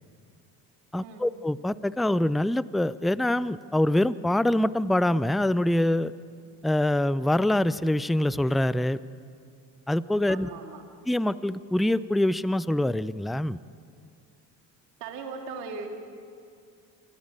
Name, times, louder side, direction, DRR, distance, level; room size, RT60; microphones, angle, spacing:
voice 1, 0.9-6.1 6.6-9.0 9.9-10.5 11.1-13.6, left 1 dB, ahead, 17 dB, 0.5 m, -25 dB
voice 2, 10.3-10.8 15.0-15.9, right 5 dB, 85° right, 3 dB, 2.6 m, -38 dB
27.0 x 15.5 x 8.9 m, 2.3 s
hypercardioid pair, 55°, 47 cm